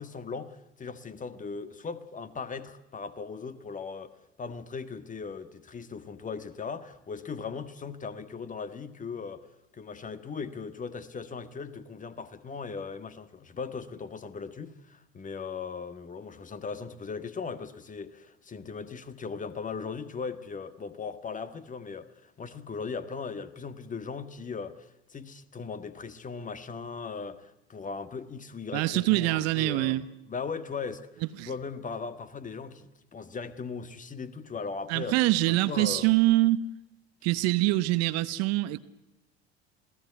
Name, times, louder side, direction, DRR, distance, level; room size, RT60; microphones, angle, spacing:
voice 1, 0.0-9.5 9.7-31.1 31.4-35.2 35.5-36.1, left 5 dB, 25° left, 1.6 m, -38 dB
voice 2, 28.7-30.0 31.4-31.5 34.9-36.6 37.2-38.8, right 18 dB, 50° right, 1.0 m, -24 dB
27.5 x 17.0 x 8.3 m
figure-of-eight pair, 70°, 32 cm